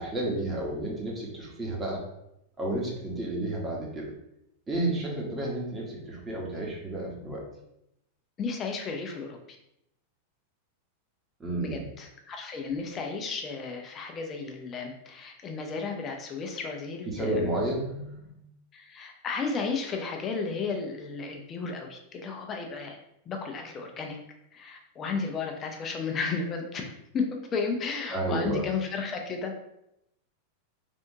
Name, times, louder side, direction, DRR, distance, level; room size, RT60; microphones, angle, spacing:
voice 1, 0.0-2.0 2.6-4.1 4.7-7.4 11.4-11.8 17.0-18.3 28.1-28.7, right 1 dB, 15° right, -3 dB, 1.0 m, -31 dB
voice 2, 8.4-9.4 11.6-17.6 18.7-23.0 23.3-24.2 24.5-27.3 27.5-29.6, left 4 dB, 25° left, 3 dB, 0.5 m, -33 dB
3.4 x 2.6 x 2.7 m, 0.81 s
figure-of-eight pair, 90°, 0 cm